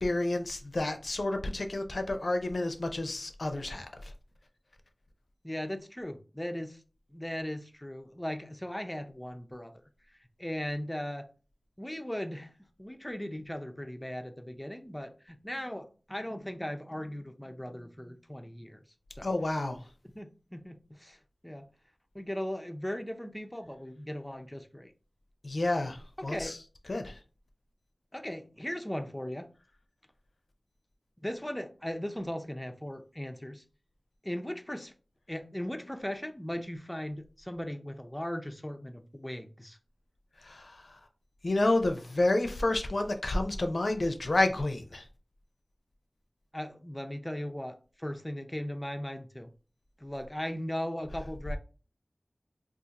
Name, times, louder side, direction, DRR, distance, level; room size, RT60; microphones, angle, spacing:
voice 1, 0.0-4.1 19.2-19.8 25.4-26.6 26.9-27.2 40.4-41.0 41.4-45.0, left 2 dB, 80° left, 0.5 m, -30 dB
voice 2, 5.4-6.8 7.1-9.7 10.4-11.3 11.8-12.5 12.8-18.8 19.2-19.3 20.1-21.7 22.1-24.9 26.2-26.5 28.1-29.5 31.2-33.6 34.2-34.9 35.3-39.8 46.5-49.5 50.0-51.6, equal, 15° left, 0.5 m, -38 dB
2.5 x 2.4 x 3.9 m
wide cardioid pair, 60°, 0 cm